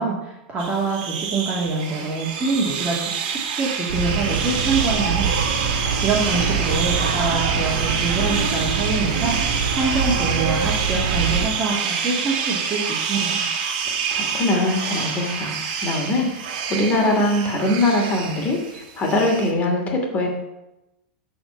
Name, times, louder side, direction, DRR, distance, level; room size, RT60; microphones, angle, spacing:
voice 1, 0.0-5.4 6.0-13.5, right 4 dB, 25° right, -5 dB, 2.3 m, -25 dB
sound 1, 0.6-19.5, right 6 dB, 60° right, 1.7 m, -27 dB
sound 2, 3.9-11.5, right 5 dB, 80° right, 1.4 m, -24 dB
voice 2, 14.1-15.5 15.8-20.3, left 1 dB, 30° left, 1 dB, 2.5 m, -22 dB
12.0 x 4.4 x 5.6 m, 0.94 s
hypercardioid pair, 115°, 5 cm